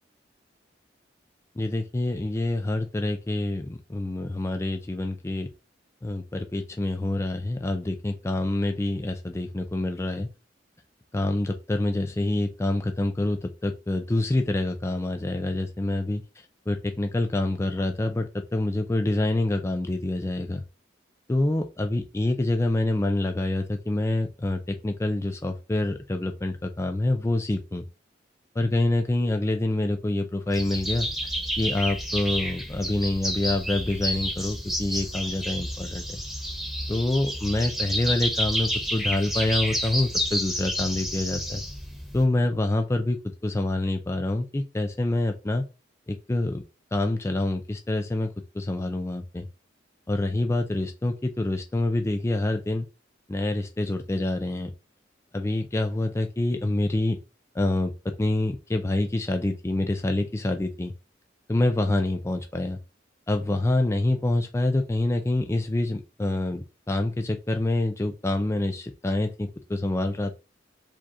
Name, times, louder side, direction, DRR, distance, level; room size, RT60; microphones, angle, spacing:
voice 1, 1.6-5.5 6.0-10.3 11.1-16.2 16.7-20.6 21.3-27.9 28.6-31.1 31.6-36.2 36.9-41.6 42.1-45.6 46.1-46.6 46.9-49.5 50.1-52.9 53.3-54.7 55.3-57.2 57.5-60.9 61.5-62.8 63.3-70.3, left 2 dB, 15° left, 5 dB, 0.4 m, -26 dB
sound 1, 30.5-42.2, equal, ahead, 1.1 m, -30 dB
5.0 x 2.4 x 4.0 m, 0.29 s
head